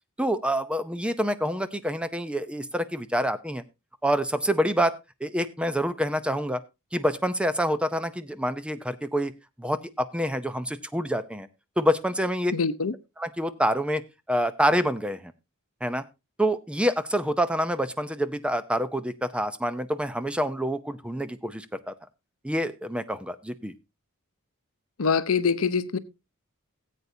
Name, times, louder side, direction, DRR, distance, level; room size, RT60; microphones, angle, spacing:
voice 1, 0.2-3.6 4.0-4.9 5.2-6.6 6.9-9.3 9.6-11.5 11.8-12.5 13.2-14.0 14.3-15.3 15.8-16.0 16.4-21.9 22.4-23.7, equal, 5° right, 0.6 m, -27 dB
voice 2, 12.5-12.9 25.0-26.0, left 5 dB, 75° left, 0.7 m, -24 dB
17.5 x 8.2 x 2.7 m
head